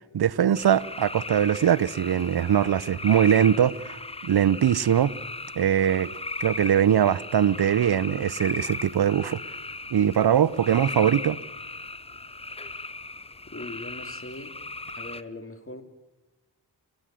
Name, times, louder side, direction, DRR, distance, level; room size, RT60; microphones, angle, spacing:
voice 1, 0.1-4.0 4.2-5.1 5.6-9.4 9.9-11.4, right 9 dB, 60° right, 0.8 m, -22 dB
sound 1, 0.6-15.2, left 3 dB, 15° left, 0.7 m, -37 dB
voice 2, 13.5-14.6 14.9-15.8, left 2 dB, 30° left, 2.8 m, -40 dB
29.5 x 12.0 x 7.7 m
cardioid pair, 40°, 43 cm